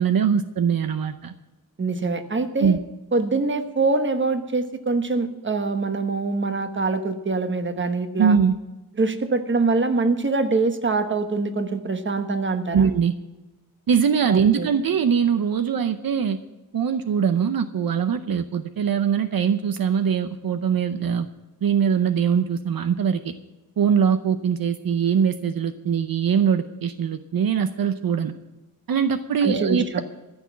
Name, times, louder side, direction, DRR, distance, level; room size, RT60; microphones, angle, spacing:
voice 1, 0.0-1.3 2.6-2.8 8.2-8.6 12.7-13.1 13.9-16.4 16.7-21.3 21.6-23.3 23.8-28.3 28.9-30.0, right 7 dB, 70° right, 10 dB, 0.8 m, -22 dB
voice 2, 1.8-2.8 3.1-8.4 9.0-12.9 14.3-14.7 29.4-30.0, right 3 dB, 30° right, 8 dB, 1.2 m, -24 dB
14.5 x 6.2 x 9.6 m, 1.1 s
wide cardioid pair, 125°, 37 cm